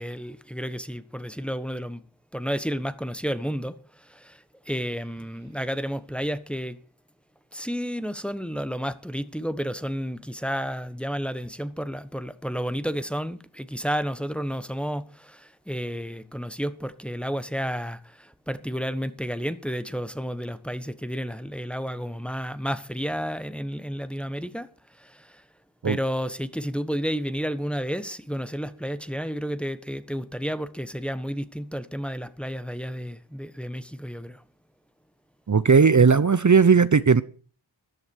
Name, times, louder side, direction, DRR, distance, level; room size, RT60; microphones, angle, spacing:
voice 1, 0.0-2.0 2.3-6.8 7.5-25.4 25.8-34.4, equal, ahead, 1.3 m, -31 dB
voice 2, 35.5-37.2, right 5 dB, 40° right, 0.9 m, -17 dB
14.0 x 11.0 x 6.4 m
cardioid pair, 50°, 48 cm